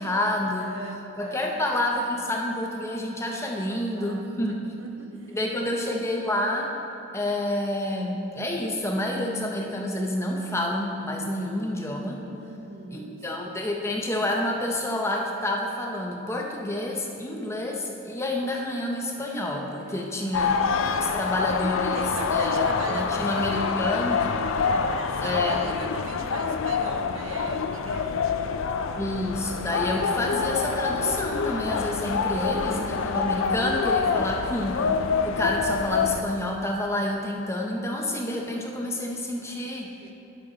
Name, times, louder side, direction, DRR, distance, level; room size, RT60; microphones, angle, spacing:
voice 1, 0.0-0.7 1.2-4.7 5.3-6.7 7.1-12.2 12.9-20.5 21.0-24.3 25.2-25.8 29.0-34.9 35.2-39.9, left 1 dB, 15° left, 0 dB, 0.7 m, -29 dB
voice 2, 0.6-1.6 3.5-5.6 12.3-13.7 17.3-17.9 19.8-20.4 21.0-21.1 21.9-28.5 31.8-32.8 40.0-40.1, right 2 dB, 75° right, 4 dB, 0.8 m, -39 dB
sound 1, 20.3-36.2, left 5 dB, 70° left, 0.4 m, -26 dB
12.5 x 5.8 x 3.9 m, 2.9 s
head